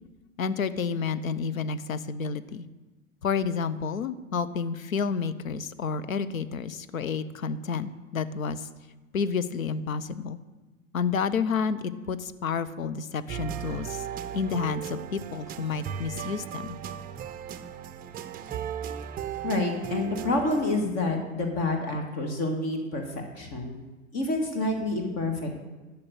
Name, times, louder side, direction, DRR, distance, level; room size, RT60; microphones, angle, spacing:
voice 1, 0.4-2.7 3.2-8.7 9.1-10.4 10.9-14.0 14.3-16.8, left 5 dB, 80° left, 13 dB, 0.7 m, -30 dB
sound 1, 13.3-20.8, right 9 dB, 20° right, 0.5 m, -36 dB
voice 2, 19.4-23.0 23.4-23.8 24.1-25.5, left 2 dB, 40° left, 4 dB, 2.0 m, -28 dB
12.5 x 6.0 x 6.5 m, 1.2 s
figure-of-eight pair, 90°, 40 cm